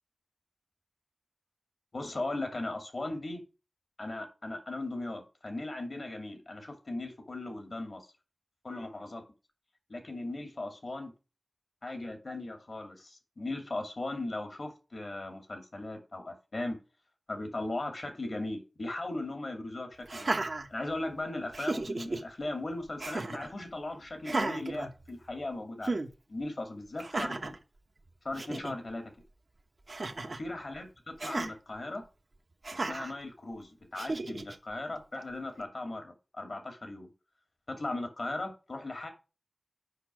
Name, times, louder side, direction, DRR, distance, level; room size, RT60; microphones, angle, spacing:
voice 1, 1.9-3.4 4.0-8.0 8.6-9.2 9.9-11.1 11.8-16.8 17.3-20.4 20.7-26.0 26.3-27.5 28.2-29.1 30.2-32.0 32.7-37.1 37.7-39.1, left 2 dB, 70° left, 5 dB, 2.4 m, -38 dB
Laughter, 20.1-21.2 21.5-22.2 23.0-23.5 24.2-25.4 25.8-26.1 27.0-27.6 28.1-28.2 28.4-28.7 29.9-30.5 31.2-31.5 32.6-33.1 34.0-34.6, right 2 dB, 65° right, 0.9 m, -34 dB
6.6 x 5.3 x 6.2 m, 0.32 s
wide cardioid pair, 50°, 0 cm